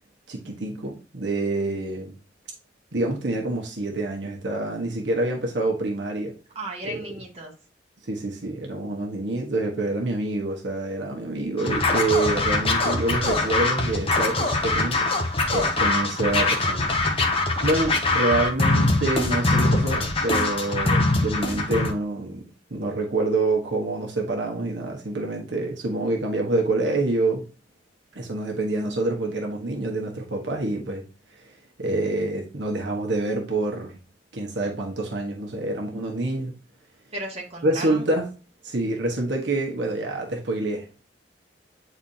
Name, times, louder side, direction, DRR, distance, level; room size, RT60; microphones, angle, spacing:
voice 1, 0.3-2.2 2.9-6.3 6.8-7.0 8.1-15.1 15.5-16.9 17.2-17.4 17.6-27.4 28.1-31.0 31.4-31.5 31.8-34.0 34.3-36.5 37.6-38.3 38.6-41.0, right 2 dB, 70° right, 1.2 m, -27 dB
voice 2, 6.6-7.5 37.1-38.1, right 1 dB, 35° right, 1.8 m, -35 dB
Scratching (performance technique), 11.6-21.9, left 2 dB, 30° left, 1.0 m, -23 dB
8.8 x 4.1 x 2.8 m
head